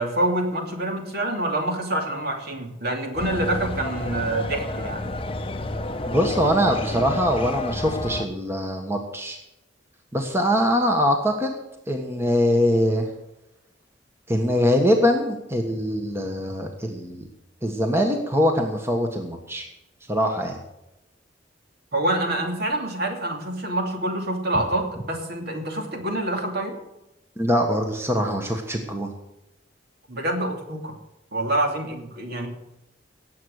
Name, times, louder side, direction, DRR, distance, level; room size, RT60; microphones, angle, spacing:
voice 1, 0.0-5.1 21.9-26.8 30.1-31.0 31.3-32.5, right 1 dB, 55° right, 3 dB, 2.8 m, -26 dB
sound 1, 3.2-8.3, left 2 dB, 30° left, 0.8 m, -30 dB
voice 2, 6.1-9.4 10.1-11.5 11.9-13.1 14.3-17.3 17.6-19.7 20.1-20.6 27.4-29.1, equal, 15° right, 3 dB, 1.4 m, -23 dB
18.0 x 7.9 x 6.6 m, 0.89 s
head